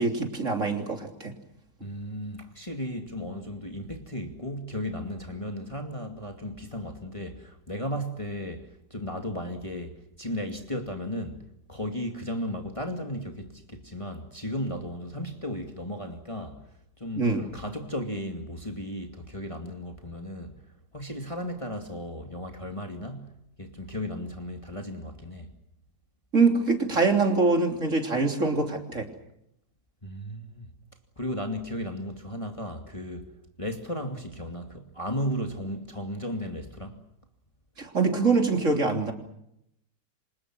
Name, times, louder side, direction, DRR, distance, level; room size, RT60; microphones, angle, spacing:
voice 1, 0.0-1.3 17.2-17.4 26.3-29.1 37.8-39.1, right 3 dB, 45° right, 3.7 m, -24 dB
voice 2, 1.8-11.4 11.7-16.6 17.0-20.6 20.9-23.3 23.6-25.5 30.0-30.7 31.2-33.3 33.6-37.0, equal, 20° left, 2.4 m, -35 dB
28.5 x 26.0 x 6.2 m
omnidirectional pair, 1.8 m